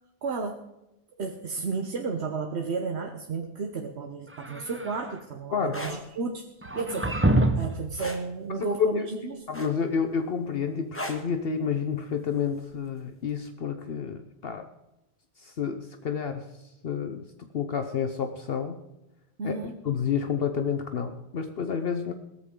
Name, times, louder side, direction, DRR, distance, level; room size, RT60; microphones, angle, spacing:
voice 1, 0.2-0.6 1.2-9.5 19.4-19.7, right 4 dB, 80° right, 3 dB, 1.3 m, -33 dB
sound 1, 4.3-5.2 6.6-7.8, right 1 dB, 15° right, 0.8 m, -26 dB
voice 2, 5.5-6.0 8.8-9.1 9.5-14.7 15.4-16.5 16.8-17.3 17.5-18.8 19.4-19.6 19.8-22.1, left 7 dB, 65° left, 7 dB, 1.0 m, -29 dB
sound 2, 5.6-6.0 8.0-8.3 9.5-10.0 10.9-11.3 12.7-12.9, equal, 10° left, 1.6 m, -35 dB
17.0 x 14.0 x 3.8 m, 0.95 s
omnidirectional pair, 1.1 m